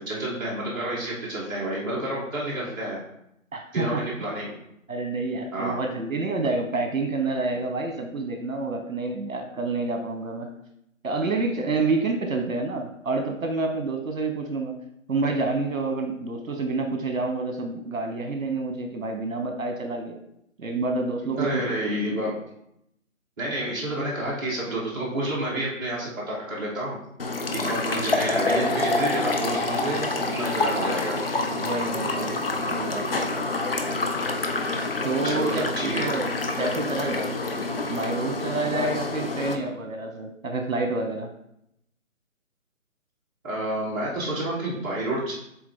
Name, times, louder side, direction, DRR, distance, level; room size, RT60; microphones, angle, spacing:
voice 1, 0.0-3.0 3.7-4.5 5.5-5.8 21.3-22.4 23.4-27.0 27.5-31.2 35.2-36.2 43.4-45.3, right 1 dB, 15° right, -10 dB, 1.7 m, -29 dB
voice 2, 3.5-4.0 4.9-10.5 11.0-14.8 15.1-20.2 20.6-22.0 31.5-32.4 32.7-33.2 35.0-36.3 36.6-37.3 37.9-41.3, right 3 dB, 70° right, 4 dB, 1.1 m, -28 dB
sound 1, 27.2-39.6, left 2 dB, 45° left, 0.7 m, -27 dB
7.6 x 3.7 x 3.8 m, 0.77 s
figure-of-eight pair, 170°, 41 cm